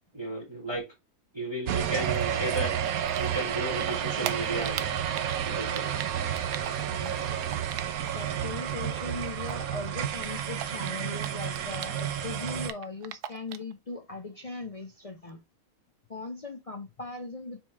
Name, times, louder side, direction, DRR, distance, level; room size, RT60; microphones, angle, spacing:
voice 1, 0.1-0.8 1.3-2.7 3.2-4.9 5.4-5.9, right 2 dB, 15° right, 1.7 m, -34 dB
sound 1, 1.7-12.7, right 9 dB, 70° right, 1.1 m, -31 dB
Typing, 2.1-3.6 3.8-8.3 8.5-12.1 12.4-13.7, right 11 dB, 90° right, 1.2 m, -39 dB
voice 2, 6.9-7.3 8.1-15.4 16.1-17.6, left 3 dB, 55° left, 0.4 m, -39 dB
6.0 x 3.6 x 4.5 m
omnidirectional pair, 1.6 m